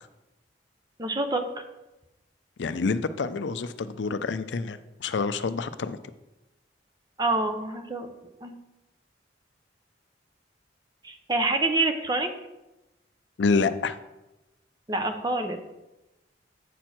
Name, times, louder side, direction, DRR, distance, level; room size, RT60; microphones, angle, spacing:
voice 1, 1.0-1.6 7.2-8.6 11.0-12.3 14.9-15.6, right 2 dB, 25° right, 6 dB, 0.7 m, -27 dB
voice 2, 2.6-6.0 13.4-14.0, left 4 dB, 80° left, 12 dB, 0.5 m, -27 dB
8.2 x 4.4 x 6.0 m, 0.98 s
head